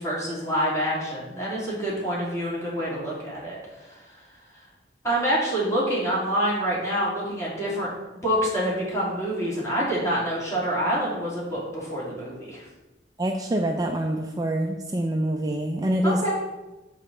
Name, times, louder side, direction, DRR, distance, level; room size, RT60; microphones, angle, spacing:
voice 1, 0.0-3.6 5.0-7.9 8.2-12.7 16.0-16.4, equal, 15° left, -6 dB, 2.8 m, -26 dB
voice 2, 13.2-16.2, right 1 dB, 20° right, 2 dB, 0.5 m, -25 dB
7.2 x 4.2 x 6.7 m, 1.1 s
head